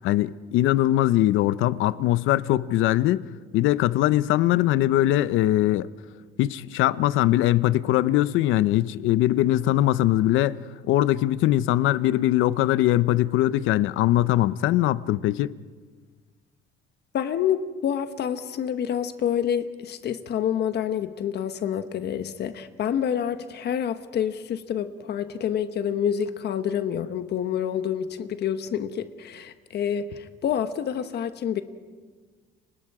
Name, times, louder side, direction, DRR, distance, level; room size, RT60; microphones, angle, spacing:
voice 1, 0.0-5.9 6.4-10.6 10.9-15.5, left 14 dB, 85° left, 0.7 m, -21 dB
voice 2, 17.1-31.6, left 9 dB, 60° left, 1.2 m, -28 dB
30.0 x 25.0 x 4.8 m
cardioid pair, 125°, 20 cm